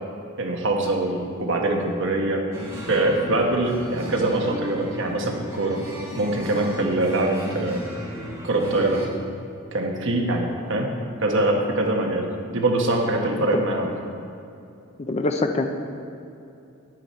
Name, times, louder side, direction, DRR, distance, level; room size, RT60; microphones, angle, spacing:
voice 1, 0.4-2.4 2.9-5.8 6.2-7.8 8.4-9.0 9.7-10.9 11.2-13.9, right 2 dB, 60° right, 1 dB, 1.2 m, -23 dB
sound 1, 2.5-9.1, equal, 15° right, 1.4 m, -35 dB
voice 2, 15.0-15.7, left 2 dB, 30° left, 6 dB, 0.5 m, -24 dB
9.7 x 8.9 x 4.3 m, 2.7 s
head